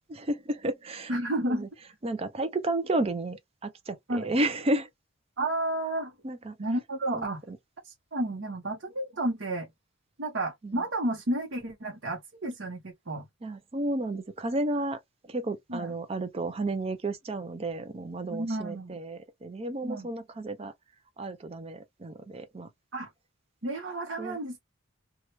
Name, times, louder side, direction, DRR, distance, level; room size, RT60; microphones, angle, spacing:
voice 1, 0.1-1.1 1.5-1.7 2.0-4.9 6.2-6.6 7.1-7.6 10.6-10.8 13.4-15.0 15.3-20.7 21.2-22.7 24.2-24.4, right 2 dB, 25° right, 0.4 m, -32 dB
voice 2, 1.1-1.7 4.1-4.3 5.4-6.1 6.6-7.4 7.8-9.7 10.2-13.2 15.7-15.9 18.3-19.0 19.8-20.1 22.9-23.1 23.6-24.6, right 1 dB, 55° right, 0.8 m, -31 dB
2.9 x 2.3 x 2.8 m
head